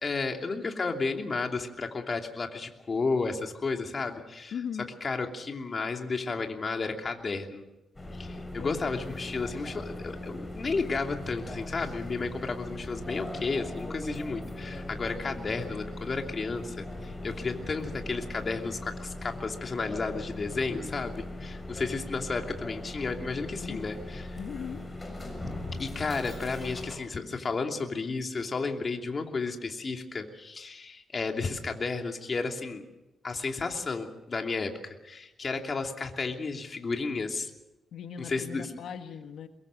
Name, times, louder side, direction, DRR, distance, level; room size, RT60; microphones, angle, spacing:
voice 1, 0.0-4.5 5.0-7.6 8.1-24.3 25.8-32.8 33.2-37.5 38.2-38.7, left 4 dB, 40° left, 3 dB, 2.8 m, -32 dB
voice 2, 4.5-4.9 8.6-8.9 23.5-23.9 24.3-24.8 37.9-39.5, left 7 dB, 85° left, 7 dB, 1.5 m, -39 dB
sound 1, 7.9-27.0, left 2 dB, 15° left, 6.9 m, -39 dB
23.0 x 22.5 x 6.4 m, 0.97 s
cardioid pair, 110°, 0 cm